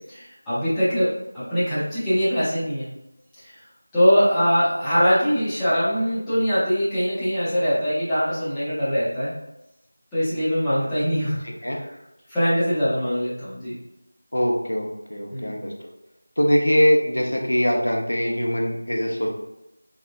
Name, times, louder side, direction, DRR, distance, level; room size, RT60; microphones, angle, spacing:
voice 1, 0.1-2.9 3.4-3.5 3.9-9.3 10.1-11.4 12.3-13.8 15.3-15.6, equal, 5° left, -16 dB, 0.6 m, -22 dB
voice 2, 14.3-15.7 16.4-19.3, equal, 90° left, -1 dB, 0.8 m, -22 dB
3.8 x 2.2 x 2.5 m, 0.91 s
figure-of-eight pair, 175°, 0 cm